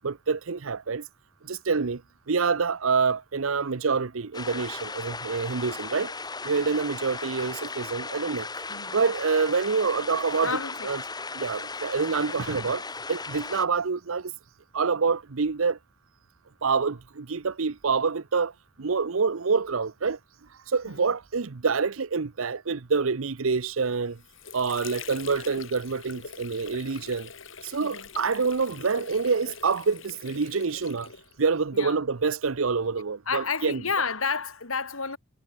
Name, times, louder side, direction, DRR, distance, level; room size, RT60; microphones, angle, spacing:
voice 1, 0.0-1.1 1.4-2.0 2.3-6.1 6.4-8.5 8.9-11.0 11.3-12.8 13.1-14.3 14.7-15.8 16.6-18.5 18.8-20.2 20.7-24.2 24.5-27.3 27.6-31.1 31.4-33.8, right 5 dB, 75° right, 0.8 m, -26 dB
sound 1, 4.3-13.6, left 3 dB, 20° left, 3.0 m, -36 dB
voice 2, 8.7-9.0 10.4-11.0 12.3-12.4 20.8-21.2 27.8-28.1 31.7-32.0 33.2-35.2, left 5 dB, 85° left, 4.5 m, -31 dB
Water / Sink (filling or washing), 23.9-31.6, left 6 dB, 65° left, 5.3 m, -44 dB
head